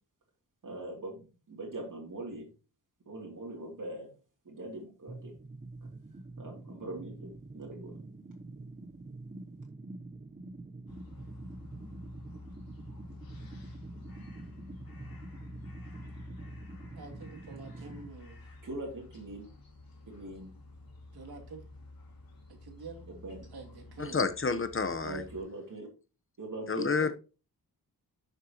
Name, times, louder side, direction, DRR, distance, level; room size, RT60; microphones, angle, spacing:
voice 1, 0.6-1.2 1.5-2.5 3.1-4.1 4.4-5.3 6.4-8.0 18.6-19.5 20.1-20.5 23.1-23.4 25.0-25.9 26.4-26.9, right 2 dB, 55° right, 2.6 m, -41 dB
sound 1, 5.1-18.1, right 2 dB, 25° right, 0.8 m, -46 dB
sound 2, 10.9-25.4, left 2 dB, 70° left, 3.1 m, -50 dB
voice 2, 17.0-18.5 21.1-21.6 22.5-23.1 23.5-24.3 27.0-27.1, right 4 dB, 90° right, 2.5 m, -47 dB
voice 3, 24.0-25.2 26.7-27.1, left 4 dB, 35° left, 0.9 m, -29 dB
12.0 x 6.4 x 2.9 m
wide cardioid pair, 130°, 37 cm